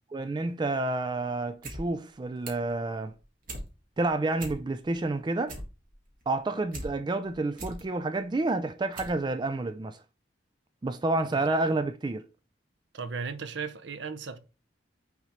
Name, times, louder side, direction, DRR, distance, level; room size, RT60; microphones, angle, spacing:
voice 1, 0.1-3.1 4.0-5.5 6.3-10.0 10.8-12.2, right 2 dB, 25° right, 0.3 m, -29 dB
sound 1, 1.4-1.8 2.1-2.7 3.1-3.7 4.0-4.1 4.3-4.9 5.2-6.9 7.3-7.8 8.4-8.5 8.9-9.2 9.5-9.6, right 1 dB, 45° right, 1.7 m, -40 dB
voice 2, 12.9-14.4, right 5 dB, 70° right, 0.7 m, -36 dB
5.9 x 3.7 x 4.2 m
head